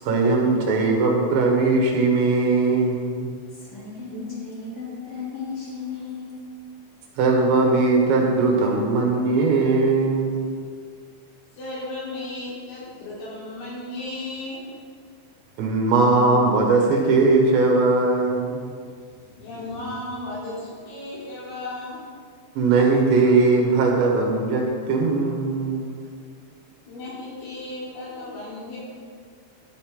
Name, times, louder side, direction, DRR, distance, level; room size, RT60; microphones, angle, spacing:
voice 1, 0.0-3.3 4.1-4.2 7.2-10.5 15.6-18.7 22.6-26.0, right 3 dB, 70° right, 0 dB, 3.3 m, -20 dB
voice 2, 3.5-6.5, left 5 dB, 30° left, -6 dB, 3.1 m, -35 dB
voice 3, 11.5-14.6 19.2-22.0 26.9-28.8, left 2 dB, 70° left, -7 dB, 6.2 m, -35 dB
14.5 x 12.5 x 3.8 m, 2.1 s
omnidirectional pair, 5.7 m